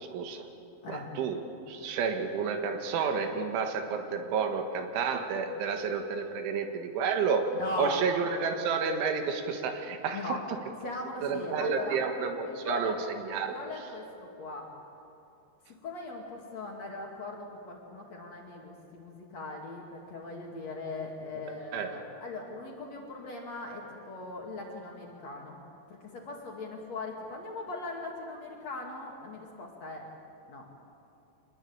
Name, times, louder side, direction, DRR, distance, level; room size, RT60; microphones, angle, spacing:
voice 1, 0.1-0.5 0.9-1.4 1.7-7.5 7.8-10.4 11.2-12.9 13.3-13.6 21.7-21.9, right 5 dB, 75° right, 6 dB, 4.0 m, -30 dB
voice 2, 7.5-8.0 10.1-10.4 10.8-12.0 12.4-13.0 13.3-14.7 15.7-25.6 25.9-30.0 30.5-30.7, left 2 dB, 45° left, 0 dB, 2.8 m, -39 dB
25.5 x 20.5 x 8.8 m, 2.8 s
omnidirectional pair, 5.6 m